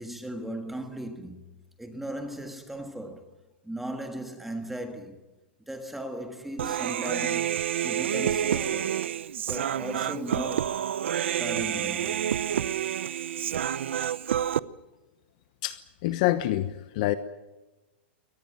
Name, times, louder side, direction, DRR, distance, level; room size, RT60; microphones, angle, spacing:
voice 1, 0.0-1.4 1.8-3.2 3.6-5.2 5.7-9.0 9.5-10.8 11.4-12.4, right 1 dB, 5° right, 1.5 m, -37 dB
Human voice, 6.6-14.6, right 10 dB, 85° right, 0.8 m, -28 dB
voice 2, 15.6-17.1, left 15 dB, 40° left, 1.0 m, -27 dB
23.5 x 18.5 x 9.0 m
supercardioid pair, 175°, 6 cm